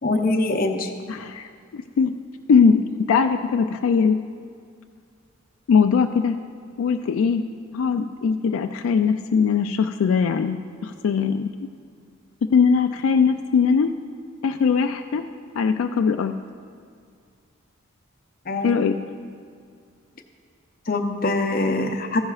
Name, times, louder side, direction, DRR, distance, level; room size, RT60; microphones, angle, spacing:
voice 1, 0.0-0.9 18.5-18.8 20.9-22.2, left 2 dB, 45° left, 5 dB, 0.6 m, -23 dB
voice 2, 1.1-2.1 2.5-2.8 3.1-4.2 5.7-6.4 6.8-7.4 7.7-11.5 12.5-13.9 14.4-15.2 15.6-16.3 18.6-19.0, left 6 dB, 75° left, 6 dB, 0.3 m, -20 dB
14.0 x 10.5 x 2.4 m, 2.2 s
head